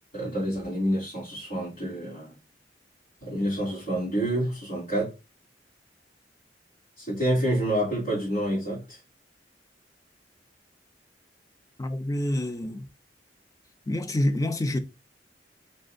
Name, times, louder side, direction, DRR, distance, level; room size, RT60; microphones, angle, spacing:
voice 1, 0.1-2.3 3.2-5.1 7.0-9.0, right 1 dB, 55° left, 3.0 m, -28 dB
voice 2, 11.8-12.9 13.9-14.8, left 1 dB, 20° left, 0.5 m, -27 dB
4.4 x 4.4 x 2.6 m
head